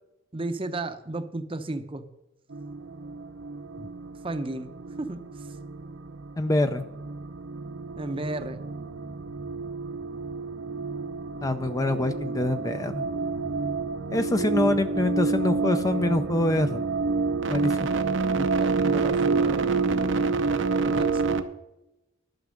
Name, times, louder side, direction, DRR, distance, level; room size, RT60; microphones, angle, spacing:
voice 1, 0.3-2.0 4.2-5.2 7.9-8.6 18.3-20.5 20.8-21.2, right 2 dB, 30° right, 9 dB, 0.7 m, -34 dB
sound 1, 2.5-21.4, right 4 dB, 70° right, 0.7 m, -28 dB
voice 2, 6.4-6.8 11.4-13.1 14.1-16.8 17.5-17.7, left 1 dB, 20° left, 9 dB, 0.4 m, -25 dB
11.5 x 5.9 x 6.5 m, 0.92 s
head